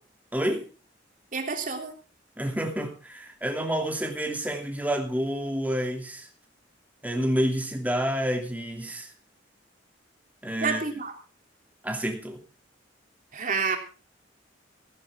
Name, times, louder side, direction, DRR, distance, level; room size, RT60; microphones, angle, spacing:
voice 1, 0.3-0.7 2.4-6.3 7.0-9.1 10.4-10.8 11.8-12.4, equal, 10° right, 3 dB, 2.8 m, -29 dB
voice 2, 1.3-1.9 10.6-11.1 13.3-13.8, right 5 dB, 45° right, 4 dB, 3.2 m, -28 dB
16.0 x 14.5 x 3.7 m, 0.35 s
head